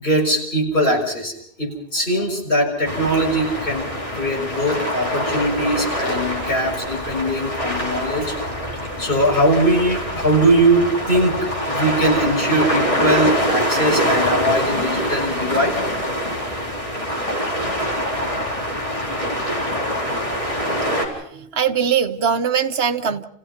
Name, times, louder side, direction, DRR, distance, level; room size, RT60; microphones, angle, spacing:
voice 1, 0.0-8.4 9.0-11.4 11.6-15.8, right 1 dB, 60° left, -2 dB, 6.6 m, -21 dB
sound 1, 2.8-21.1, equal, 35° left, 4.5 m, -24 dB
voice 2, 21.0-23.2, right 7 dB, 75° right, 6 dB, 1.3 m, -22 dB
30.0 x 16.5 x 5.8 m, 0.68 s
omnidirectional pair, 1.0 m